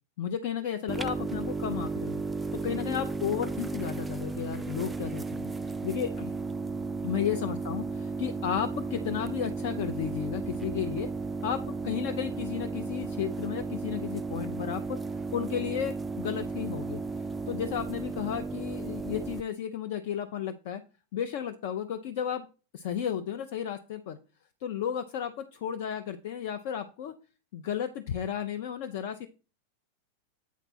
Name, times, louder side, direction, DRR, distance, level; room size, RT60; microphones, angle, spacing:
voice 1, 0.2-2.2 2.6-5.5 5.8-6.3 7.0-11.1 11.4-15.0 15.3-17.0 17.5-20.8 21.1-22.5 22.7-24.2 24.6-27.1 27.5-29.3, left 9 dB, 50° left, 8 dB, 0.6 m, -33 dB
sound 1, 0.9-19.4, right 3 dB, 10° right, 0.3 m, -34 dB
8.3 x 4.4 x 4.1 m, 0.33 s
figure-of-eight pair, 90°, 0 cm